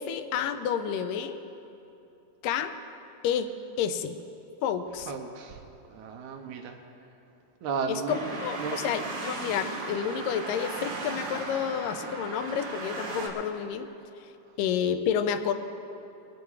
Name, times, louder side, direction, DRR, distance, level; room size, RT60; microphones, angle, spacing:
voice 1, 0.0-1.4 2.4-2.7 3.2-3.5 3.8-4.2 4.6-5.1 7.9-13.9 14.6-15.5, left 8 dB, 85° left, 9 dB, 2.3 m, -30 dB
voice 2, 5.1-5.6 5.9-6.8 7.6-8.8, right 5 dB, 75° right, 4 dB, 2.0 m, -34 dB
sound 1, 8.1-13.3, right 3 dB, 50° right, 1.5 m, -36 dB
21.5 x 9.5 x 4.7 m, 2.8 s
omnidirectional pair, 3.8 m